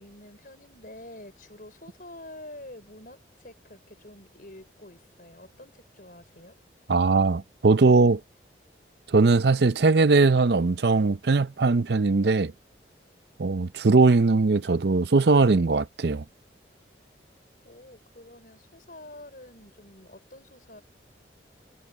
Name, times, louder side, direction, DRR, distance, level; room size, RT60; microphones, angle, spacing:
voice 1, 0.0-6.5 17.6-20.8, left 1 dB, 50° left, 5.0 m, -47 dB
voice 2, 6.9-8.2 9.1-12.5 13.4-16.2, right 3 dB, 65° right, 0.6 m, -20 dB
head